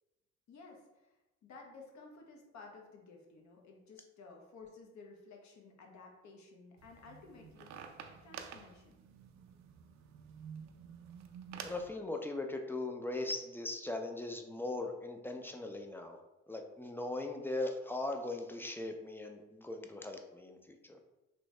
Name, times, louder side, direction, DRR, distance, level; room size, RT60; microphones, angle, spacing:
voice 1, 0.5-1.1 1.4-7.8 8.2-9.0, left 4 dB, 70° left, 1 dB, 0.9 m, -54 dB
sound 1, 6.8-11.9, right 7 dB, 65° right, 0.4 m, -50 dB
voice 2, 11.6-16.2 16.5-21.0, left 2 dB, 10° left, 4 dB, 0.3 m, -39 dB
3.1 x 2.7 x 3.1 m, 1.0 s
cardioid pair, 90°, 30 cm